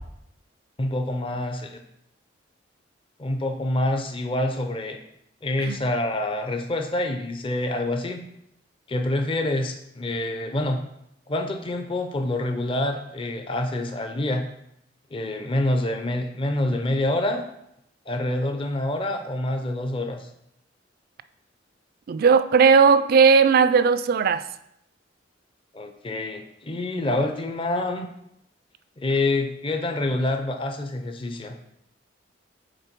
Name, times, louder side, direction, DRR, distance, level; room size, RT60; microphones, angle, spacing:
voice 1, 0.8-1.8 3.2-5.0 5.4-8.2 8.9-10.8 11.3-14.4 15.1-17.4 18.1-20.3 25.7-28.1 29.0-31.6, left 1 dB, 30° left, 5 dB, 0.5 m, -26 dB
voice 2, 22.1-24.5, right 5 dB, 55° right, 13 dB, 0.3 m, -17 dB
6.6 x 4.1 x 4.5 m, 0.78 s
head